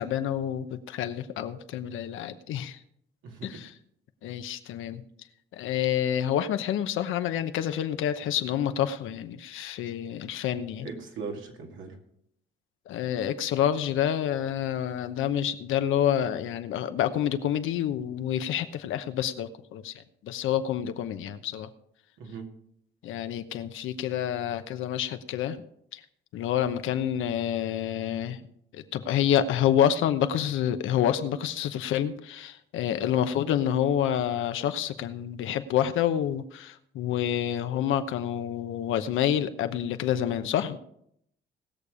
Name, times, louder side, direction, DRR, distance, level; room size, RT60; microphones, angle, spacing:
voice 1, 0.0-2.8 3.4-3.7 4.2-5.0 5.5-10.9 12.9-21.7 23.0-25.6 25.9-26.0 26.3-28.4 28.7-40.8, left 10 dB, 85° left, 9 dB, 0.9 m, -28 dB
voice 2, 10.8-12.0 22.2-22.5, right 5 dB, 85° right, 2 dB, 2.5 m, -39 dB
19.0 x 6.8 x 4.9 m, 0.72 s
cardioid pair, 90°, 20 cm